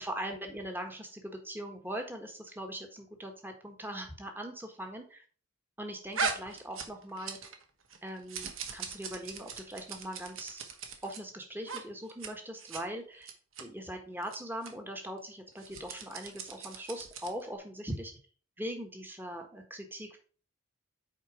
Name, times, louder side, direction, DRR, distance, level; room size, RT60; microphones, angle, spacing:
voice 1, 0.0-5.2 5.8-7.4 8.0-10.7 11.0-13.3 13.6-18.1 18.6-20.2, right 1 dB, 10° right, 4 dB, 1.4 m, -41 dB
sound 1, 6.1-7.6 7.9-11.2 11.6-11.8 12.1-12.3 12.6-12.8 13.2-13.6 14.2-14.4 14.6-14.7 15.5-17.4, right 5 dB, 75° right, 1.3 m, -39 dB
8.2 x 4.8 x 4.8 m, 0.40 s
head